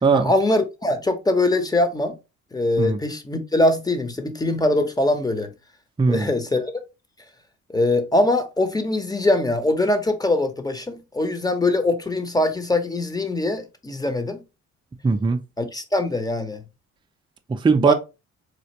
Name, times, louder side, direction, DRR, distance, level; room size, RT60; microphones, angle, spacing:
voice 1, 0.1-2.1 2.5-5.5 6.1-6.7 7.7-14.4 15.6-16.6 17.9-18.0, left 2 dB, 15° left, 0.7 m, -22 dB
voice 2, 6.0-6.3 15.0-15.4 17.5-17.9, right 4 dB, 15° right, 0.4 m, -19 dB
4.3 x 2.4 x 2.8 m
cardioid pair, 90°, 30 cm